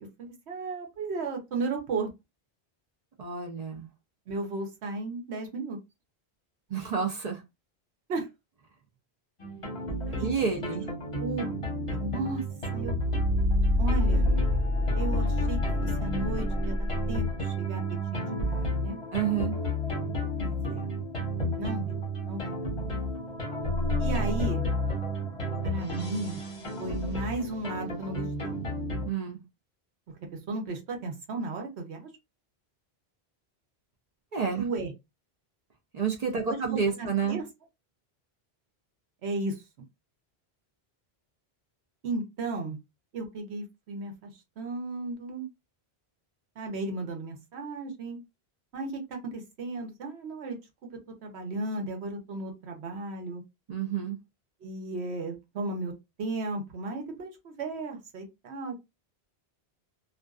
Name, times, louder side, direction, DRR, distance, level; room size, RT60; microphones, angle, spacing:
voice 1, 0.2-2.1 4.3-5.8 8.1-8.3 10.1-10.3 11.2-11.5 11.9-12.4 12.7-12.9 13.8-14.3 14.9-19.0 20.4-20.9 21.6-22.6 24.0-24.6 25.6-26.4 26.8-28.6 30.5-32.1 34.6-34.9 36.5-37.4 39.2-39.6 42.0-42.8 43.1-44.3 44.6-45.5 46.6-48.2 48.7-50.6 51.2-53.4 54.6-55.9 56.2-58.7, right 3 dB, 85° right, 1.0 m, -35 dB
voice 2, 3.2-3.9 6.7-7.4 10.2-10.9 19.1-19.6 29.1-29.4 34.3-34.6 35.9-37.4 53.7-54.2, right 6 dB, 50° right, 0.5 m, -29 dB
sound 1, 9.4-29.1, left 1 dB, 35° left, 0.8 m, -29 dB
2.5 x 2.2 x 2.3 m
omnidirectional pair, 1.1 m